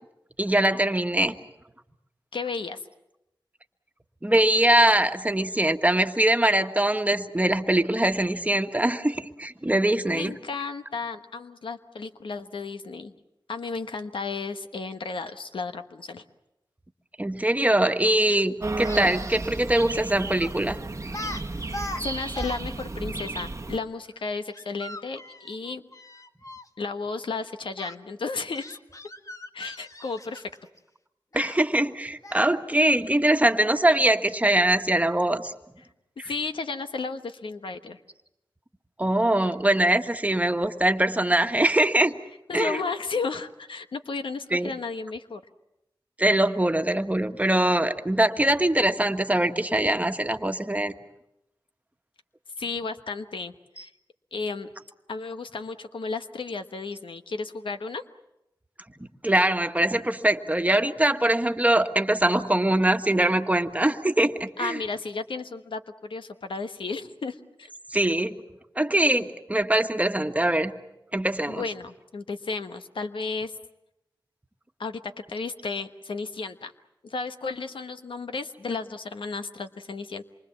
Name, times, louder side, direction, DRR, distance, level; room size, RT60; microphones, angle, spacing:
voice 1, 0.4-1.3 4.2-10.3 17.2-20.8 31.3-35.5 36.2-36.3 39.0-42.1 42.5-42.8 44.5-44.7 46.2-50.9 59.2-64.8 67.9-68.3 68.8-70.7 71.1-71.6, right 1 dB, 15° right, 7 dB, 1.6 m, -22 dB
voice 2, 2.3-2.8 10.1-13.1 13.5-16.2 21.5-21.7 22.0-25.8 26.8-28.8 29.5-30.5 36.2-38.0 42.5-45.4 52.6-53.9 54.3-54.7 55.1-58.0 64.6-67.7 71.5-73.5 74.8-75.0 75.3-76.7 77.0-80.2, left 4 dB, 85° left, 8 dB, 1.2 m, -33 dB
sound 1, 18.6-23.8, right 2 dB, 35° right, 1.0 m, -33 dB
Speech, 18.8-19.1 20.4-20.6 21.1-21.4 21.7-22.6 22.9-23.0 24.5-26.7 27.8-27.9 28.6-30.7 31.3-31.6 32.2-32.6, left 1 dB, 40° left, 1.5 m, -39 dB
27.0 x 24.0 x 7.3 m, 0.87 s
cardioid pair, 50°, 8 cm